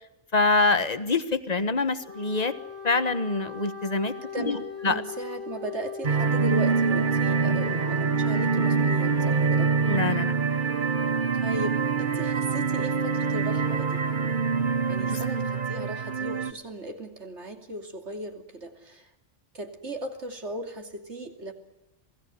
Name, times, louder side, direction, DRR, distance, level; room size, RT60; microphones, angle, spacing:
voice 1, 0.3-2.5 2.8-4.6 4.8-5.0 9.9-10.3 15.1-15.2, left 3 dB, 35° left, 11 dB, 1.5 m, -25 dB
Wind instrument woodwind instrument, 1.9-10.0, left 6 dB, 70° left, 5.3 m, -39 dB
voice 2, 4.3-9.7 11.3-14.1 14.9-19.1 19.5-21.5, right 1 dB, 75° right, 5 dB, 3.1 m, -37 dB
sound 1, 6.0-16.5, right 5 dB, 45° right, 1.5 m, -25 dB
27.5 x 18.0 x 9.6 m, 0.89 s
omnidirectional pair, 1.2 m